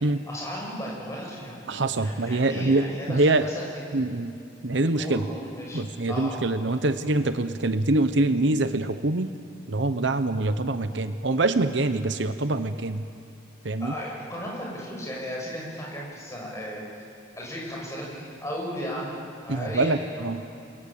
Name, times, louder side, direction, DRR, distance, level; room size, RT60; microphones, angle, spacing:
voice 1, 0.3-1.7 2.0-4.0 5.0-5.8 6.1-6.4 13.8-16.8 17.4-19.1 19.4-20.0 20.4-20.6, equal, 15° left, -3 dB, 7.3 m, -35 dB
voice 2, 1.7-3.5 3.9-4.3 4.6-5.2 5.7-9.3 9.7-13.0 13.6-13.9 19.5-20.4, right 2 dB, 65° right, 10 dB, 0.9 m, -24 dB
29.5 x 21.5 x 8.9 m, 2.6 s
head